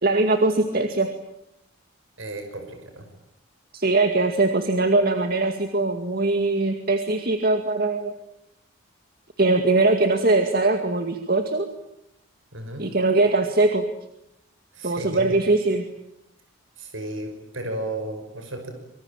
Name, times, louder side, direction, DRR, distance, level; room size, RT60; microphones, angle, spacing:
voice 1, 0.0-1.1 3.7-8.2 9.4-11.7 12.8-13.8 14.8-15.9, right 2 dB, 45° right, 7 dB, 2.2 m, -21 dB
voice 2, 2.2-3.1 12.5-12.9 14.7-15.2 16.8-18.7, right 1 dB, 70° right, 6 dB, 5.9 m, -34 dB
26.0 x 24.5 x 9.1 m, 0.80 s
head